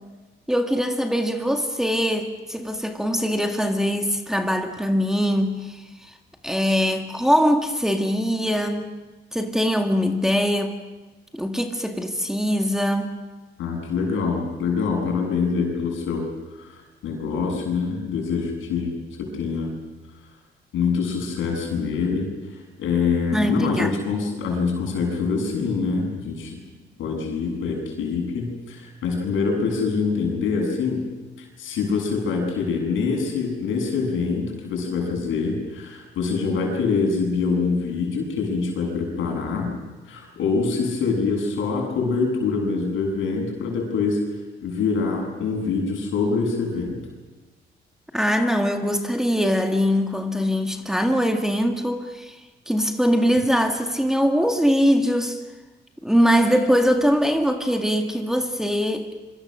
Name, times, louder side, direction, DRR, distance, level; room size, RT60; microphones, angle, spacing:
voice 1, 0.5-6.1 6.4-8.9 9.3-10.7 11.3-13.1 23.3-24.0 48.1-52.4 52.7-55.4 56.0-59.3, equal, ahead, 3 dB, 2.0 m, -22 dB
voice 2, 13.6-16.3 16.6-19.7 20.7-22.3 22.8-26.6 27.0-31.0 31.4-39.8 40.1-44.2 44.6-47.0, left 4 dB, 80° left, 1 dB, 7.5 m, -25 dB
26.0 x 24.0 x 6.4 m, 1.2 s
cardioid pair, 90°, 20 cm